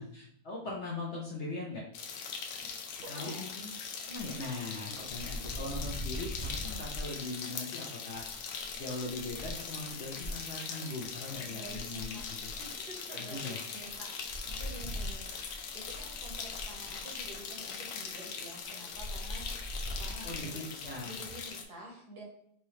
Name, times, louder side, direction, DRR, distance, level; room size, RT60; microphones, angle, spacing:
voice 1, 0.0-1.9 3.1-3.7 4.0-8.2 8.7-12.5 13.2-13.6 20.2-21.1, left 2 dB, 55° left, -3 dB, 0.8 m, -40 dB
sound 1, 1.9-21.6, left 6 dB, 80° left, 1.2 m, -41 dB
voice 2, 3.0-3.4 11.5-12.2 12.6-20.6 21.0-22.2, right 1 dB, 65° right, 0 dB, 1.6 m, -49 dB
sound 2, 4.1-7.1 8.1-10.3 11.0-11.1 11.3-12.8 13.9-14.0 14.2-17.4 18.9-21.4, equal, 40° right, 1.1 m, -42 dB
4.7 x 2.9 x 3.1 m, 0.70 s
omnidirectional pair, 1.8 m